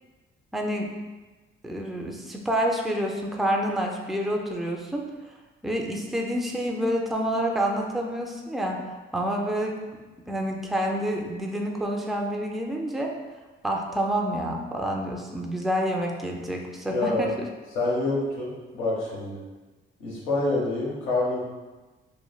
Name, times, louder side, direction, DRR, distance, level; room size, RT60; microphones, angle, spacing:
voice 1, 0.5-0.9 1.6-5.0 5.6-8.8 9.1-9.8 10.3-13.1 13.6-17.5, equal, ahead, 0 dB, 0.3 m, -28 dB
voice 2, 16.9-17.3 17.7-19.4 20.0-21.5, left 2 dB, 90° left, -4 dB, 0.9 m, -27 dB
3.1 x 2.2 x 2.2 m, 1.2 s
cardioid pair, 90°, 20 cm